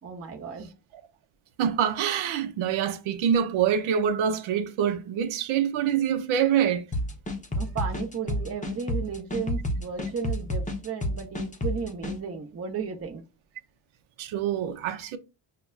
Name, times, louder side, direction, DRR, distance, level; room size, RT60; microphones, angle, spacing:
voice 1, 0.0-0.7 7.5-13.2, right 6 dB, 30° right, 0.7 m, -34 dB
voice 2, 1.6-6.9 14.2-15.2, right 8 dB, 75° right, 0.7 m, -25 dB
sound 1, 6.9-12.2, left 1 dB, 15° left, 0.7 m, -30 dB
5.7 x 2.2 x 2.3 m
cardioid pair, 90°, 50 cm